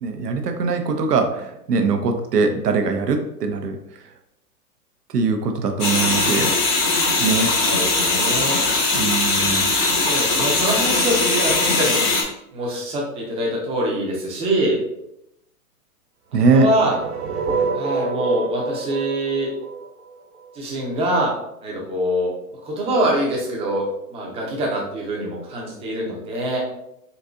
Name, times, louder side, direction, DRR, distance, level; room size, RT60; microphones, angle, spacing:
voice 1, 0.0-3.8 5.1-6.5 7.2-7.5 8.9-9.7 16.3-16.7, right 4 dB, 90° right, 5 dB, 0.7 m, -21 dB
sound 1, 5.8-12.2, left 3 dB, 25° left, 0.7 m, -20 dB
voice 2, 7.5-8.6 10.0-12.0 12.5-14.8 16.5-17.0 17.7-19.5 20.5-21.3 21.6-22.3 22.6-26.6, right 1 dB, 15° right, -2 dB, 0.5 m, -24 dB
sound 2, 16.5-20.6, right 5 dB, 75° right, 1.2 m, -27 dB
4.0 x 2.6 x 2.3 m, 0.80 s
hypercardioid pair, 125°, 46 cm